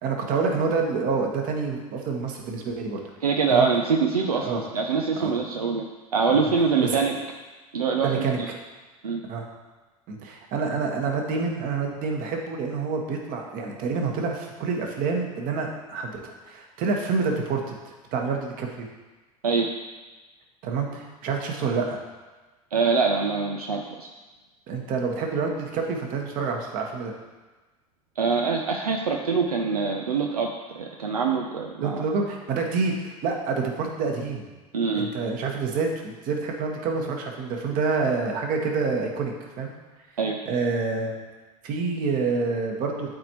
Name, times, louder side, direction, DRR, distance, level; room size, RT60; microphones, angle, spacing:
voice 1, 0.0-3.0 3.5-3.6 4.4-4.7 5.2-5.3 6.3-6.4 6.8-6.9 8.0-8.4 9.3-9.5 10.1-17.8 18.1-18.9 20.6-22.0 24.7-27.1 31.8-34.5 34.9-39.7 40.4-41.2 41.6-43.1, right 4 dB, 50° right, 1 dB, 1.4 m, -27 dB
voice 2, 3.2-5.8 6.1-7.2 7.7-8.5 9.0-9.2 19.4-19.7 22.7-24.1 28.2-32.0 34.7-35.1 40.2-40.4, right 5 dB, 85° right, 2 dB, 0.6 m, -24 dB
11.5 x 4.3 x 3.0 m, 1.2 s
figure-of-eight pair, 75°, 19 cm